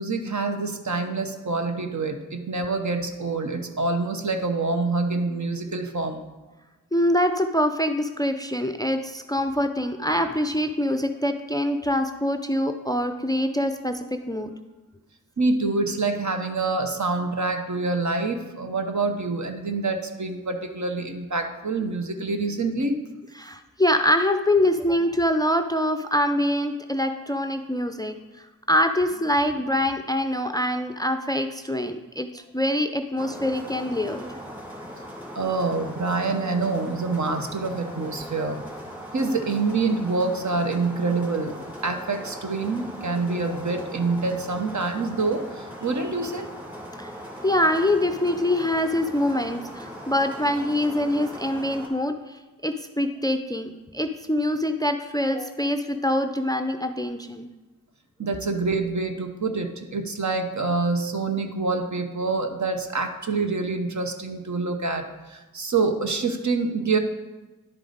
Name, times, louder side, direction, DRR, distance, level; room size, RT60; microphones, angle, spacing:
voice 1, 0.0-6.2 15.4-23.0 35.3-38.6 39.1-41.5 41.8-46.5 58.2-67.0, right 3 dB, 55° right, 5 dB, 0.9 m, -26 dB
voice 2, 6.9-14.5 23.4-34.2 47.0-47.1 47.4-57.5, left 1 dB, 10° left, 7 dB, 0.4 m, -24 dB
sound 1, 33.2-51.9, equal, 5° right, 2.1 m, -39 dB
10.5 x 4.9 x 4.0 m, 1.2 s
cardioid pair, 45°, 34 cm